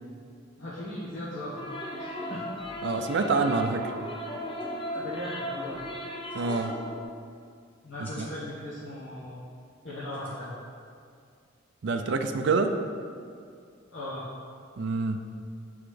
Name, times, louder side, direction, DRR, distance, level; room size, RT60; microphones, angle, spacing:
voice 1, 0.6-1.7 1.9-2.4 4.9-5.8 7.8-9.4 9.8-10.5 13.9-14.3, left 1 dB, 75° left, -10 dB, 1.3 m, -38 dB
sound 1, 1.6-7.0, equal, 25° left, 0.6 m, -36 dB
voice 2, 2.8-3.9 6.3-6.7 8.2-8.3 11.8-12.8 14.8-15.2, right 3 dB, 65° right, 6 dB, 0.4 m, -26 dB
sound 2, 4.6-4.7 4.9-5.3 6.1-6.7 7.7-8.3 10.1-10.3, left 1 dB, 10° left, 1.6 m, -51 dB
9.6 x 3.9 x 3.3 m, 2.3 s
head